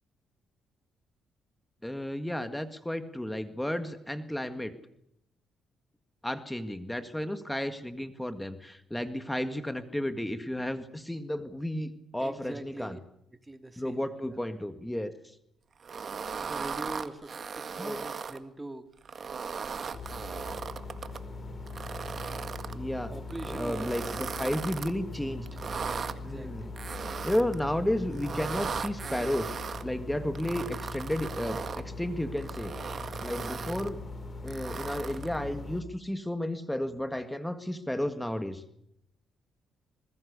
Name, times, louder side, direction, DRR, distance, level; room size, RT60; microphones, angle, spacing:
voice 1, 1.8-4.7 6.2-13.0 13.8-15.1 17.8-18.0 22.7-23.1 23.5-25.5 26.2-26.7 27.2-32.8 33.2-34.0 34.4-38.6, left 1 dB, 5° left, 9 dB, 1.8 m, -33 dB
voice 2, 12.2-13.0 13.5-14.0 16.4-18.9 23.1-24.6 26.1-26.7, right 2 dB, 15° right, 9 dB, 2.0 m, -43 dB
sound 1, 15.8-18.4 19.0-21.2 21.7-22.7 23.3-24.9 25.5-26.1 26.8-27.6 28.1-29.8 30.3-31.8 32.4-33.9 34.5-35.4, right 6 dB, 45° right, 1.8 m, -37 dB
sound 2, 19.9-35.8, left 2 dB, 35° left, 4.7 m, -41 dB
27.0 x 21.0 x 6.9 m, 0.76 s
cardioid pair, 90°, 0 cm